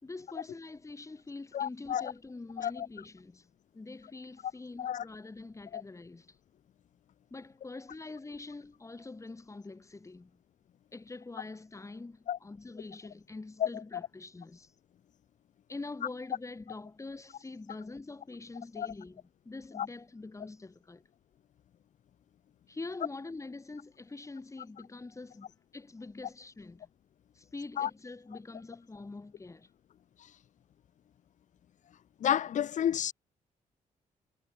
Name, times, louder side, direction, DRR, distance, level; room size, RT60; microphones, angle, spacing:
voice 1, 0.0-3.5 3.7-6.4 7.3-10.4 10.9-14.7 15.7-21.0 22.7-26.9 27.3-29.7, left 3 dB, 20° left, 4.4 m, -45 dB
voice 2, 1.5-2.1 2.6-2.9 4.8-5.0 5.7-5.8 12.3-12.4 13.6-13.7 18.8-18.9 19.7-19.9 27.8-27.9 32.2-33.1, left 10 dB, 65° left, 1.0 m, -30 dB
cardioid pair, 100°, 14 cm